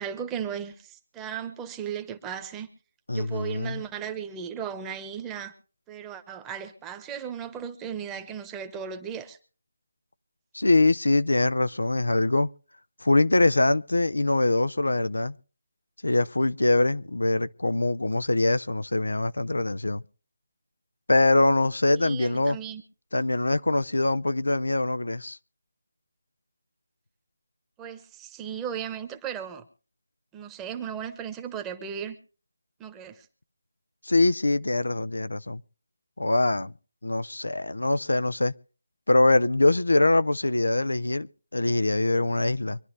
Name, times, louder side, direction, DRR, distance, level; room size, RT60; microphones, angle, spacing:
voice 1, 0.0-2.7 3.1-5.5 5.9-9.4 22.0-22.8 27.8-29.6 30.3-32.2 32.8-33.3, right 8 dB, 10° right, 1.1 m, -36 dB
voice 2, 3.1-3.8 10.5-12.5 13.0-15.3 16.0-20.0 21.1-22.6 23.1-25.4 34.0-35.6 36.2-36.7 37.0-38.5 39.1-42.8, left 2 dB, 90° left, 0.5 m, -23 dB
25.0 x 11.0 x 3.2 m
figure-of-eight pair, 160°, 0 cm